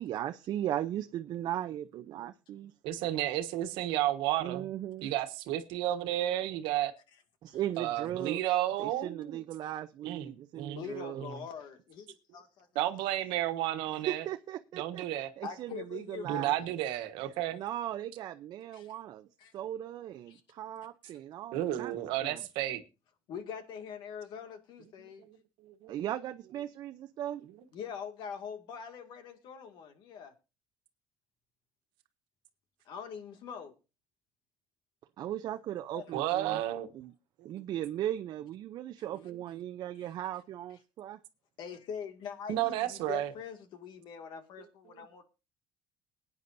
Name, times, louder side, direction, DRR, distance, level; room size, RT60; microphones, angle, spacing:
voice 1, 0.0-2.7 4.4-5.1 7.4-8.4 8.8-11.2 14.1-15.1 15.4-16.8 17.5-19.3 19.5-22.4 25.9-27.4 35.2-36.6 36.9-37.1 37.4-41.2, right 12 dB, 55° right, 0.6 m, -37 dB
voice 2, 2.8-4.7 5.0-6.9 7.8-9.4 10.0-10.8 11.1-11.4 12.7-14.2 14.8-15.3 16.2-17.6 21.5-22.8 25.3-25.4 25.6-25.9 36.1-36.9 37.5-37.6 42.5-43.3 44.9-45.0, right 13 dB, 90° right, 1.3 m, -32 dB
voice 3, 10.5-12.7 15.4-16.7 18.7-18.9 19.4-19.5 20.3-20.4 21.0-21.1 23.3-25.2 27.7-30.3 32.9-33.7 35.9-36.1 41.6-45.2, left 7 dB, 65° left, 2.2 m, -43 dB
21.5 x 9.4 x 2.7 m
cardioid pair, 130°, 8 cm